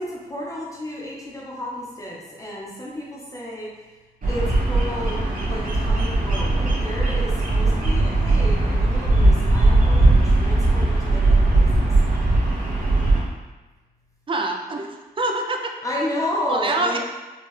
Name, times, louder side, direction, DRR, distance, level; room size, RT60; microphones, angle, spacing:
voice 1, 0.0-3.7 4.3-11.9 15.8-17.0, left 1 dB, 20° left, -4 dB, 0.7 m, -32 dB
Bird vocalization bird call bird song, 4.2-13.2, right 2 dB, 60° right, 1.0 m, -19 dB
voice 2, 14.3-15.7 16.5-17.0, right 2 dB, 35° right, 2 dB, 0.4 m, -25 dB
4.4 x 2.3 x 3.1 m, 1.2 s
wide cardioid pair, 140°, 16 cm